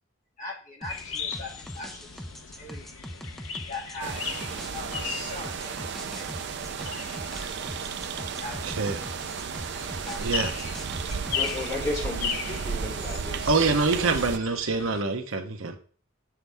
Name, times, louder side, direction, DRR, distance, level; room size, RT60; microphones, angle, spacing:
voice 1, 0.4-2.2 2.6-2.9 3.7-4.3 4.7-7.5 8.2-8.6 9.1-9.3 9.7-10.3 10.6-10.7, left 2 dB, 40° left, -3 dB, 2.2 m, -41 dB
sound 1, 0.8-11.8, equal, ahead, 0.5 m, -42 dB
sound 2, 0.9-15.0, left 6 dB, 70° left, 0.7 m, -38 dB
sound 3, 4.0-14.4, right 6 dB, 55° right, 0.4 m, -34 dB
voice 2, 10.2-10.5 13.5-15.8, right 3 dB, 70° right, 6 dB, 1.0 m, -25 dB
voice 3, 11.3-13.7 14.0-14.2, left 2 dB, 15° left, -6 dB, 3.4 m, -34 dB
8.2 x 6.0 x 3.5 m, 0.41 s
head